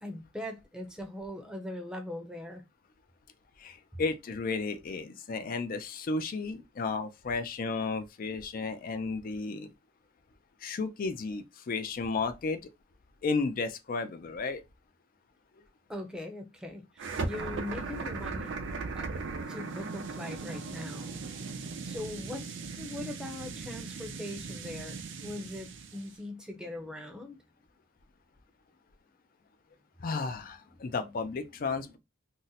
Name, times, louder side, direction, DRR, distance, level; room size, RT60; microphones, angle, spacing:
voice 1, 0.0-2.6 15.9-18.5 18.9-19.1 19.5-21.2 21.8-27.4 31.0-31.1 31.6-32.0, left 1 dB, 5° right, 0.6 m, -41 dB
voice 2, 3.6-9.7 10.6-12.6 13.2-14.6 30.0-32.0, left 4 dB, 45° left, 0.4 m, -33 dB
sound 1, 17.0-26.1, right 4 dB, 60° right, 0.4 m, -38 dB
2.6 x 2.1 x 3.9 m
head